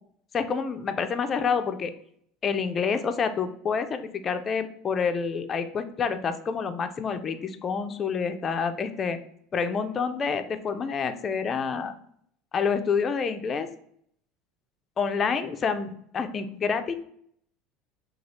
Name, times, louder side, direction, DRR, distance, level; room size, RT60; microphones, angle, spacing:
voice 1, 0.3-1.9 2.4-9.2 9.5-11.9 12.5-13.7 15.0-16.9, left 5 dB, 25° left, 8 dB, 0.3 m, -28 dB
3.1 x 2.3 x 4.1 m, 0.66 s
supercardioid pair, 140°, 0 cm